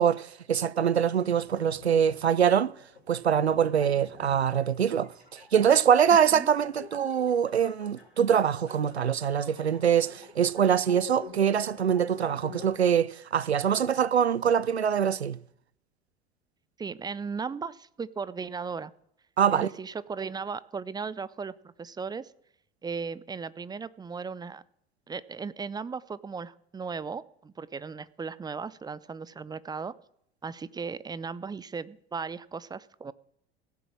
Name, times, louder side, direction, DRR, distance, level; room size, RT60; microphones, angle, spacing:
voice 1, 0.0-2.7 3.1-15.4 19.4-19.7, right 8 dB, 90° right, 0.5 m, -24 dB
sound 1, 1.2-12.7, left 3 dB, 85° left, 3.8 m, -48 dB
voice 2, 16.8-18.9 19.5-22.3 22.8-24.6 25.1-29.9 30.4-33.1, right 5 dB, 15° right, 0.5 m, -36 dB
16.5 x 7.0 x 7.4 m
figure-of-eight pair, 75°, 31 cm